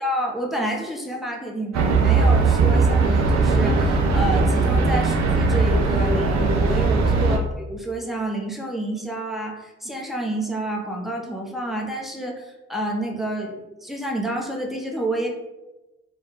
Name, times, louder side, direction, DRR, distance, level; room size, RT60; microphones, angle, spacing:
voice 1, 0.0-15.3, right 1 dB, ahead, -1 dB, 0.6 m, -29 dB
sound 1, 1.7-7.4, right 4 dB, 65° right, 0.4 m, -19 dB
2.2 x 2.1 x 3.0 m, 1.0 s
supercardioid pair, 45°, 30 cm